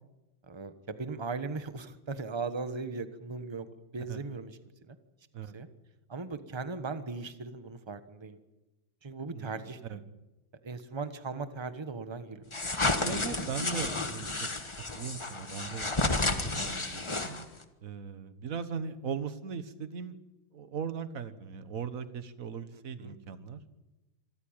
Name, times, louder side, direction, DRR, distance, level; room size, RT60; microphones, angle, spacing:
voice 1, 0.4-4.6 4.9-5.0 5.5-5.7 6.1-8.4 9.0-10.0 10.6-12.6 22.7-23.1, right 4 dB, 20° right, 10 dB, 0.8 m, -38 dB
voice 2, 9.3-10.0 13.0-14.5 14.9-17.5 17.8-20.2 20.5-23.6, right 6 dB, 45° right, 11 dB, 1.5 m, -39 dB
sound 1, 12.5-17.6, left 2 dB, 15° left, 1.1 m, -31 dB
26.0 x 14.5 x 9.0 m, 1.1 s
omnidirectional pair, 2.3 m